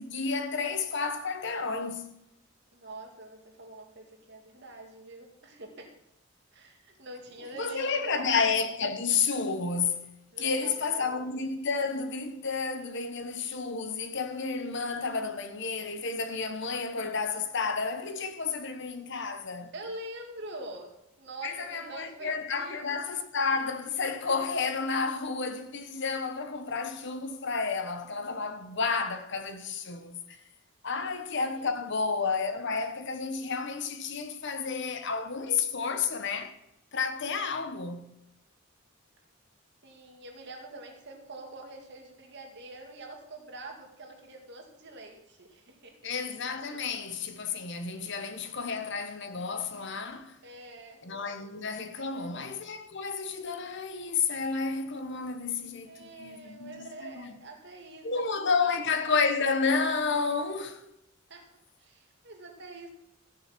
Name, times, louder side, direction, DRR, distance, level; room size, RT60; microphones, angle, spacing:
voice 1, 0.0-2.1 7.5-10.1 10.4-19.7 21.4-30.2 30.8-36.5 36.9-38.1 46.0-50.4 51.0-57.3 58.0-60.8, left 5 dB, 55° left, 1.1 m, -31 dB
voice 2, 2.7-5.9 6.5-8.5 10.3-11.2 19.7-23.0 31.5-31.7 39.8-46.0 48.0-48.1 50.4-51.0 52.0-52.3 55.9-58.3 58.6-58.8 61.3-61.5 61.8-62.9, right 2 dB, 55° right, 2.2 m, -45 dB
13.5 x 6.9 x 5.9 m
head